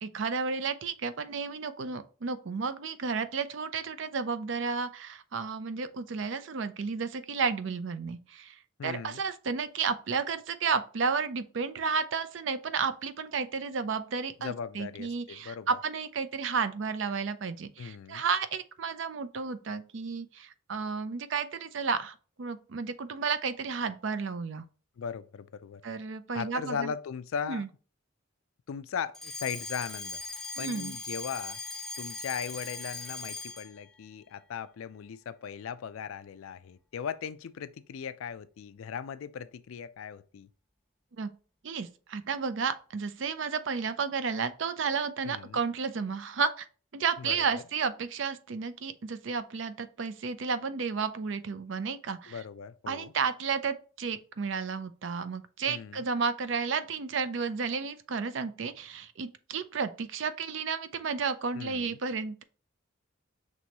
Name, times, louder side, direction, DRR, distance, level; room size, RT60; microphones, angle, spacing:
voice 1, 0.0-24.6 25.8-26.9 27.5-27.7 30.6-30.9 41.2-41.3 41.6-46.7 46.9-52.4 52.9-62.4, right 5 dB, 65° right, 0.5 m, -32 dB
voice 2, 8.8-9.2 14.4-15.8 17.8-18.2 25.0-25.8 26.3-27.6 28.7-30.2 30.6-31.6 32.0-40.5 45.2-45.6 47.2-47.6 52.3-53.1 55.7-56.0 61.5-62.0, left 7 dB, 85° left, 0.4 m, -38 dB
Alarm, 29.1-33.8, left 3 dB, ahead, 0.4 m, -39 dB
6.0 x 3.1 x 2.8 m
head